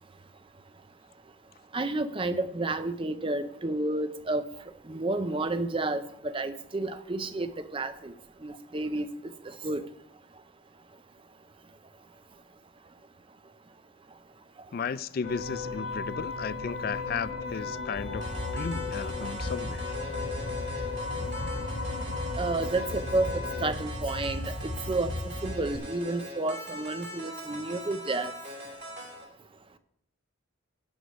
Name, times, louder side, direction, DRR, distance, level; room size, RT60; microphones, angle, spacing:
voice 1, 1.7-4.4 4.9-8.1 8.4-9.1 9.6-9.8 22.4-24.4 24.9-25.1 25.4-28.3, right 2 dB, 25° right, 0.5 m, -30 dB
voice 2, 14.7-19.9, left 6 dB, 45° left, 0.3 m, -35 dB
sound 1, 15.2-23.7, left 4 dB, 65° left, 1.5 m, -36 dB
sound 2, 18.0-25.8, left 1 dB, 20° left, 0.7 m, -37 dB
sound 3, 18.2-29.2, right 1 dB, 50° right, 2.6 m, -42 dB
9.4 x 7.8 x 5.3 m
head